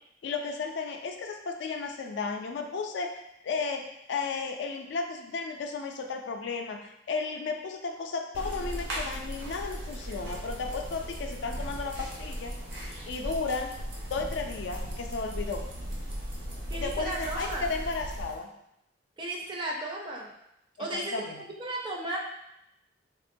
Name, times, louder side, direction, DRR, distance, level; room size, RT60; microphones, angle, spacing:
voice 1, 0.2-3.1 3.4-3.8 4.1-12.5 13.1-13.7 14.1-15.6 16.7-18.5 20.8-21.4, left 4 dB, 70° left, 4 dB, 0.3 m, -34 dB
Old pocket watch ticking, 8.3-18.4, equal, 80° right, 0.7 m, -37 dB
voice 2, 16.7-17.6 19.2-20.3 20.8-22.2, right 1 dB, 25° right, -2 dB, 0.4 m, -35 dB
3.4 x 2.2 x 2.5 m, 0.81 s
head